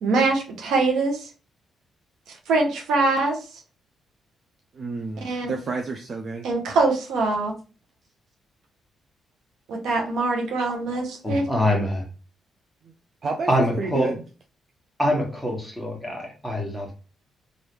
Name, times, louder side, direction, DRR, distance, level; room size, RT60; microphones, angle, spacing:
voice 1, 0.0-1.3 2.5-3.4 5.2-5.5 6.4-7.5 9.7-11.4, right 3 dB, 85° right, 2 dB, 0.8 m, -23 dB
voice 2, 4.7-6.5 13.2-14.2, right 4 dB, 50° right, 2 dB, 0.4 m, -30 dB
voice 3, 11.2-12.0 13.5-14.1 15.0-16.9, equal, ahead, -2 dB, 1.3 m, -24 dB
3.2 x 2.6 x 3.0 m, 0.35 s
cardioid pair, 85°, 0 cm